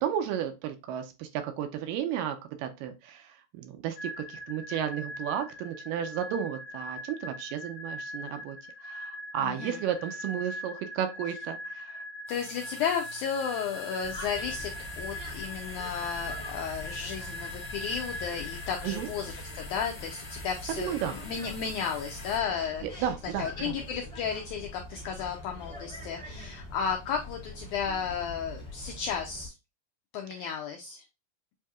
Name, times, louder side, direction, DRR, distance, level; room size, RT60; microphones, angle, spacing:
voice 1, 0.0-8.6 8.8-12.1 18.8-19.1 20.8-21.2 22.8-23.8 30.3-30.5, right 9 dB, 80° right, 7 dB, 2.2 m, -33 dB
sound 1, 4.0-19.6, left 1 dB, 70° left, 2.1 m, -41 dB
voice 2, 9.4-9.8 12.3-23.1 23.4-29.5 30.1-31.0, left 7 dB, 90° left, 2 dB, 1.7 m, -33 dB
sound 2, 12.3-22.4, left 2 dB, 45° left, 1.1 m, -45 dB
sound 3, 14.0-29.5, left 1 dB, 5° left, 0.6 m, -44 dB
7.4 x 2.8 x 2.3 m, 0.26 s
omnidirectional pair, 4.1 m